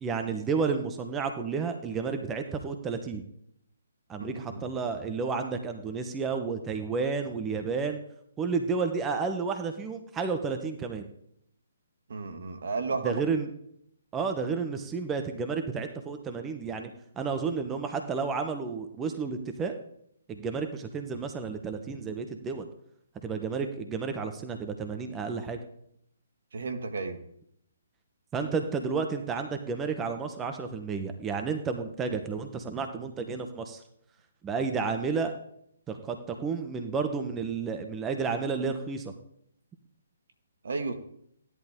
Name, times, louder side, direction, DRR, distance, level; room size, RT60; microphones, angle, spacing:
voice 1, 0.0-3.2 4.1-8.0 8.4-11.1 13.0-13.5 14.1-19.7 20.3-22.7 23.2-25.6 28.3-33.8 34.4-35.3 35.9-39.1, right 5 dB, 15° right, 6 dB, 1.2 m, -31 dB
voice 2, 4.2-4.6 12.1-13.2 26.5-27.2 40.6-41.0, right 4 dB, 65° right, 6 dB, 1.9 m, -33 dB
15.5 x 11.0 x 3.8 m, 0.71 s
figure-of-eight pair, 135°, 0 cm